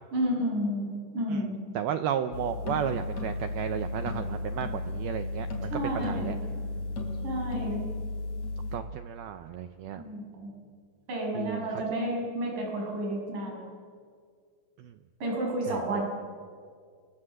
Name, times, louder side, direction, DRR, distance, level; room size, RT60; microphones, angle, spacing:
voice 1, 0.1-1.6 5.7-6.3 7.2-7.9 9.9-10.5 11.1-13.7 15.2-16.0, right 1 dB, 40° right, 0 dB, 8.0 m, -31 dB
voice 2, 1.7-5.7 6.0-6.4 8.7-10.0 11.4-11.7 14.8-14.9 15.7-16.0, right 9 dB, 90° right, 9 dB, 2.2 m, -33 dB
sound 1, 2.3-8.8, left 2 dB, 40° left, 4.2 m, -34 dB
29.5 x 25.5 x 7.8 m, 2.1 s
omnidirectional pair, 5.6 m